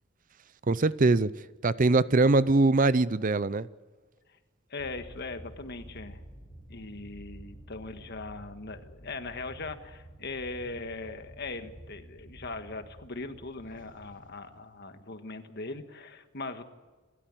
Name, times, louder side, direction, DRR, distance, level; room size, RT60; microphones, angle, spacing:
voice 1, 0.7-1.3 1.6-3.7, right 3 dB, 40° right, 0.6 m, -22 dB
voice 2, 4.7-6.2 6.7-16.6, left 3 dB, 50° left, 1.6 m, -40 dB
sound 1, 4.8-14.9, right 1 dB, 25° left, 4.6 m, -50 dB
28.0 x 13.5 x 9.1 m
head